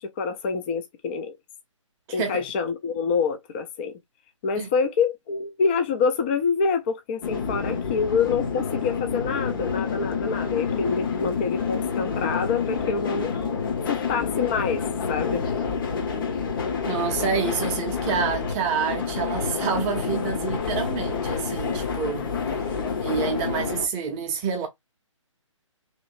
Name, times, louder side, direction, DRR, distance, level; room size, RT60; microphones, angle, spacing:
voice 1, 0.0-1.3 2.1-4.0 4.4-13.3 13.9-14.8 15.1-15.4, left 5 dB, 20° left, 0.4 m, -26 dB
voice 2, 2.1-2.5 4.6-4.7 16.8-22.3 23.0-24.7, right 6 dB, 15° right, 0.6 m, -28 dB
sound 1, 7.2-23.9, left 5 dB, 40° left, 0.9 m, -28 dB
3.0 x 3.0 x 2.5 m
figure-of-eight pair, 140°, 17 cm